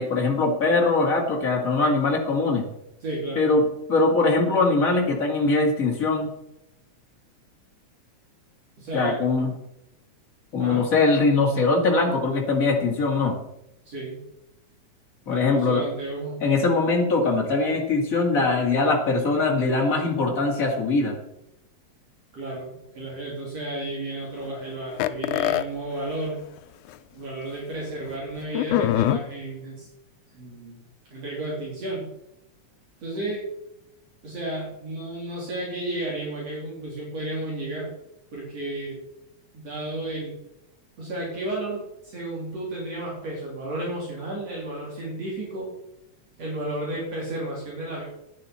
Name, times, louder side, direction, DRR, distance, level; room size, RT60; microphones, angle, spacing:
voice 1, 0.0-2.7 3.4-6.3 8.9-9.5 10.5-13.4 15.3-15.8 16.4-21.2, left 3 dB, 30° left, 0 dB, 2.1 m, -22 dB
voice 2, 3.0-3.5 8.8-9.2 10.6-10.9 13.9-14.2 15.3-16.4 22.3-26.4 27.1-29.9 30.3-30.8 31.1-32.1 33.0-33.4 34.2-37.9 38.3-39.0 39.5-40.3 41.0-45.7 46.4-48.0, right 1 dB, 55° right, -4 dB, 3.9 m, -32 dB
sound 1, 25.0-25.6 26.6-26.7 26.9-27.0 28.5-29.2, left 13 dB, 85° left, 2.1 m, -22 dB
10.5 x 10.0 x 4.3 m, 0.85 s
omnidirectional pair, 3.4 m